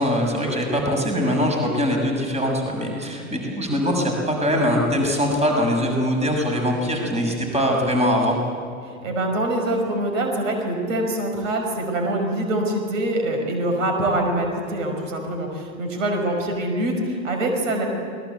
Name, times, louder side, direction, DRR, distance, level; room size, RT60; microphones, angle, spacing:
voice 1, 0.0-8.4, equal, 15° right, 2 dB, 6.7 m, -22 dB
voice 2, 8.8-17.9, right 1 dB, 65° right, 3 dB, 5.9 m, -24 dB
27.5 x 21.5 x 8.4 m, 2.1 s
figure-of-eight pair, 90°, 41 cm